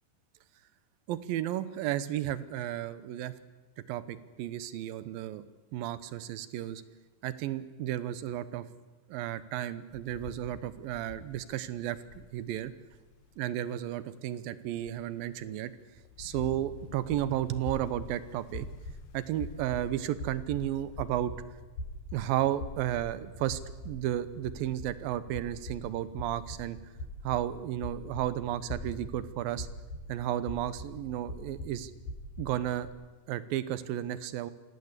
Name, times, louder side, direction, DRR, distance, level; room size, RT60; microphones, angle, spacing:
voice 1, 1.1-3.3 3.9-5.4 5.7-6.8 7.2-8.7 9.1-12.7 13.4-15.7 16.2-18.7 19.1-21.3 22.1-23.6 23.9-26.8 27.2-29.7 30.1-31.9 32.4-32.9 33.3-34.5, right 12 dB, 75° right, 15 dB, 2.5 m, -33 dB
Rain, 9.9-13.4 14.0-14.1 14.5-21.1, left 9 dB, 85° left, 3.1 m, -52 dB
sound 1, 17.0-32.9, left 1 dB, 70° left, 8.4 m, -43 dB
26.0 x 18.0 x 8.2 m, 1.2 s
omnidirectional pair, 4.6 m